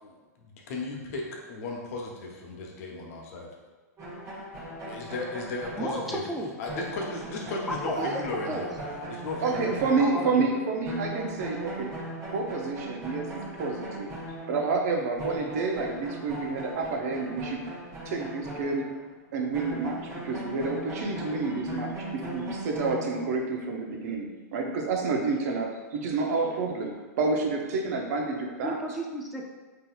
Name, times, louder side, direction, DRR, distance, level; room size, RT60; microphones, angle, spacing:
voice 1, 0.0-3.5 4.8-6.2 6.6-8.7 9.1-9.7, left 2 dB, 60° left, -1 dB, 0.8 m, -35 dB
sound 1, 4.0-10.6 10.8-19.1 19.5-23.5, right 1 dB, 35° right, 1.1 m, -39 dB
voice 2, 5.8-6.5 7.9-8.1 8.5-8.6 10.0-10.5 28.6-29.5, equal, ahead, -2 dB, 0.4 m, -33 dB
voice 3, 9.4-11.9 12.3-13.3 13.6-14.1 14.5-17.7 18.0-18.8 19.3-20.0 20.2-28.8, right 4 dB, 65° right, 1 dB, 0.6 m, -29 dB
3.8 x 2.8 x 2.3 m, 1.3 s
hypercardioid pair, 120°, 9 cm